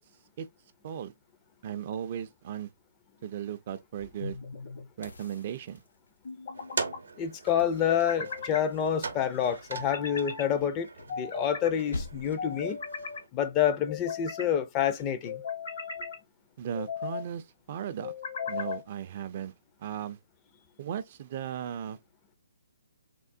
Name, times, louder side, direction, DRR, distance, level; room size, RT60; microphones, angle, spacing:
voice 1, 1.6-2.7 3.2-4.4 5.0-5.8 16.6-18.1 18.5-19.5 19.8-20.2 20.8-22.0, right 9 dB, 45° right, 0.4 m, -36 dB
sound 1, 4.2-4.9 6.2-7.0 7.9-8.7 9.7-10.5 11.1-11.7 12.4-13.2 13.9-14.5 15.3-16.2 16.7-17.3 18.0-18.8, left 6 dB, 60° left, 1.0 m, -37 dB
sound 2, 5.0-6.3 7.6-8.8 10.5-11.6 11.9-12.6 14.9-15.3, left 2 dB, 80° left, 0.6 m, -43 dB
sound 3, 6.5-13.3, right 4 dB, 75° right, 0.7 m, -41 dB
voice 2, 7.2-10.9 11.2-12.8 13.3-15.4, left 9 dB, 25° left, 0.4 m, -28 dB
3.6 x 2.0 x 2.4 m
figure-of-eight pair, 140°, 0 cm